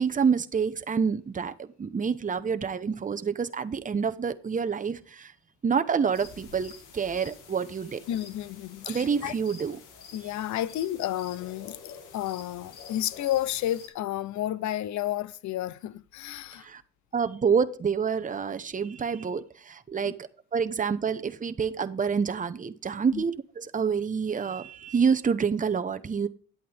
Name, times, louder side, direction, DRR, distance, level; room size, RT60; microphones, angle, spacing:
voice 1, 0.0-5.3 5.6-8.0 8.9-9.8 16.6-16.8 17.1-26.3, right 6 dB, 25° right, 0.8 m, -28 dB
sound 1, 6.1-13.9, left 6 dB, 90° left, 1.9 m, -48 dB
voice 2, 8.1-9.3 10.1-16.7 20.1-20.2 23.1-23.2, left 13 dB, 70° left, 0.6 m, -31 dB
9.5 x 8.5 x 3.4 m
cardioid pair, 90°, 30 cm